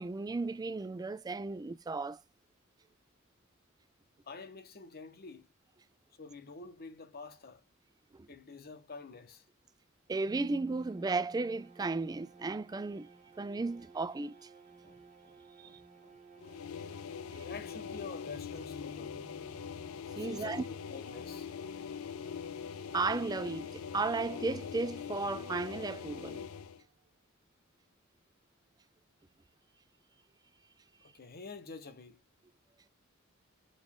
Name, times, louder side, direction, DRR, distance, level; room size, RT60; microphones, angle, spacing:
voice 1, 0.0-2.2 8.1-8.3 10.1-13.1 13.4-14.3 20.2-20.6 22.9-26.5, right 3 dB, 20° right, 0.3 m, -34 dB
voice 2, 4.3-5.5 6.2-7.6 8.3-9.4 14.8-16.2 16.4-16.6 16.8-17.0 17.3-19.2 20.2-21.5 31.1-32.2, left 4 dB, 45° left, 1.0 m, -48 dB
sound 1, 10.3-27.0, right 2 dB, 35° right, 0.8 m, -56 dB
sound 2, 16.4-26.8, left 7 dB, 75° left, 0.4 m, -42 dB
5.3 x 2.5 x 3.5 m
head